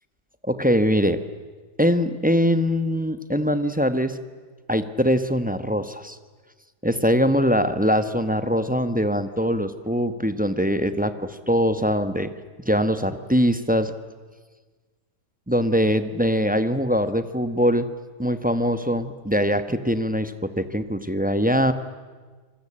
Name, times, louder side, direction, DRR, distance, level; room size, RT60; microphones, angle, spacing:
voice 1, 0.5-1.2 1.8-4.2 4.7-6.2 6.8-12.3 12.7-13.9 15.5-17.9 18.2-21.7, equal, 5° right, 11 dB, 0.7 m, -22 dB
27.5 x 20.5 x 8.7 m, 1.4 s
omnidirectional pair, 1.8 m